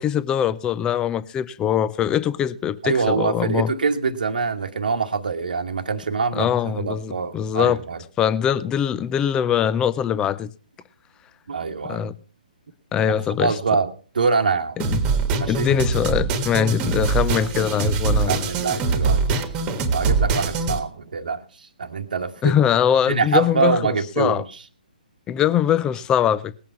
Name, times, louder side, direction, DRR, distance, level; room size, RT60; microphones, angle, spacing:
voice 1, 0.0-3.7 6.3-7.8 8.2-10.5 11.8-12.1 12.9-13.5 14.8-15.0 15.5-18.4 22.4-23.8 24.2-24.4 25.3-26.5, left 9 dB, 15° left, 0.5 m, -22 dB
voice 2, 2.8-8.0 11.5-12.1 13.4-14.8 15.4-15.7 18.2-19.5 19.9-22.5 23.1-24.6, right 5 dB, 65° right, 1.2 m, -24 dB
sound 1, 14.8-20.8, right 4 dB, 20° right, 1.5 m, -23 dB
19.0 x 8.4 x 5.5 m
figure-of-eight pair, 130°, 5 cm